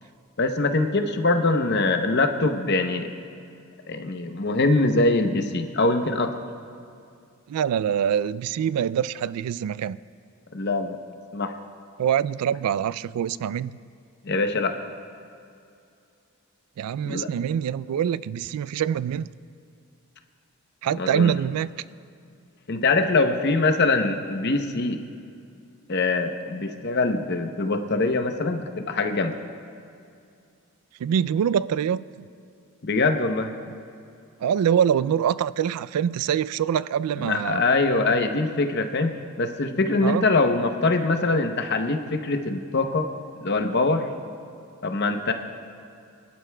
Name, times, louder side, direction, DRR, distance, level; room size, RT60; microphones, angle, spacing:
voice 1, 0.4-3.1 3.9-6.3 10.5-11.0 11.3-11.5 14.2-14.7 17.0-17.3 21.0-21.4 22.7-25.0 25.9-29.3 32.8-33.5 37.2-39.1 39.4-43.1 43.4-44.1 44.8-45.3, left 3 dB, 50° left, 6 dB, 0.7 m, -23 dB
voice 2, 7.5-10.0 12.0-13.8 16.8-19.3 20.8-21.7 31.0-32.2 34.4-37.7 40.0-40.3, right 8 dB, 90° right, 18 dB, 0.3 m, -24 dB
23.5 x 11.5 x 2.2 m, 2.4 s
head